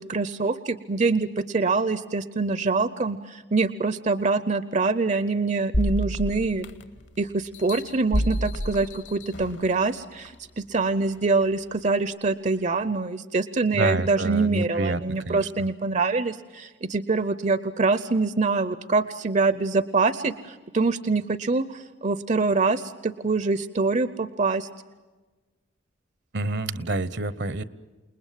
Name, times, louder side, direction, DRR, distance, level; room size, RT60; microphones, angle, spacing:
voice 1, 0.0-6.7 7.2-24.7, right 3 dB, 40° right, 15 dB, 0.7 m, -25 dB
sound 1, 5.7-7.0 7.5-9.7 10.2-10.3, equal, 70° left, 1.9 m, -28 dB
voice 2, 13.7-15.0 15.2-15.5 26.3-27.6, right 2 dB, 65° right, 17 dB, 1.0 m, -27 dB
28.5 x 20.5 x 7.6 m, 1.2 s
head